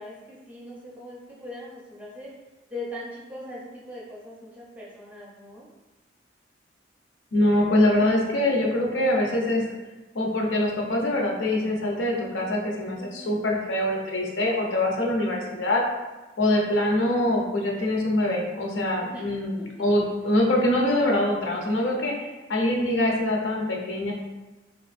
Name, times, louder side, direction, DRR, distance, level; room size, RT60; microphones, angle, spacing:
voice 1, 0.0-2.3 2.7-5.7 8.0-8.1 13.0-13.4 19.1-19.3, left 1 dB, 10° right, -6 dB, 0.6 m, -40 dB
voice 2, 7.3-9.6 10.1-15.8 16.4-22.1 22.5-24.1, left 1 dB, 80° left, -1 dB, 0.6 m, -24 dB
3.4 x 3.0 x 2.4 m, 1.1 s
head